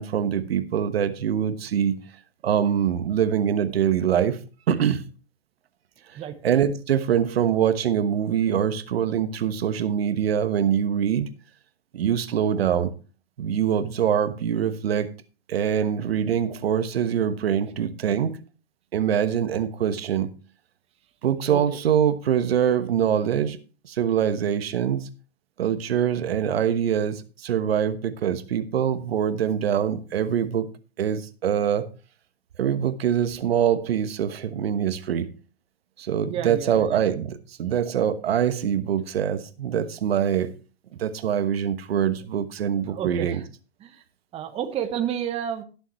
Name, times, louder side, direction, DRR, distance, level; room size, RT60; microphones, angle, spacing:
voice 1, 0.0-2.0 2.4-4.4 4.7-5.0 6.4-11.3 11.9-12.9 13.4-15.1 15.5-18.4 18.9-20.3 21.2-23.6 23.8-25.1 25.6-30.7 31.0-31.9 32.6-35.3 36.0-40.5 41.0-43.4, right 9 dB, 65° right, 1.3 m, -24 dB
voice 2, 36.2-37.0 42.8-43.5 43.8-44.0 44.3-45.6, right 9 dB, 20° right, 1.1 m, -30 dB
18.5 x 7.0 x 3.1 m
hypercardioid pair, 125°, 33 cm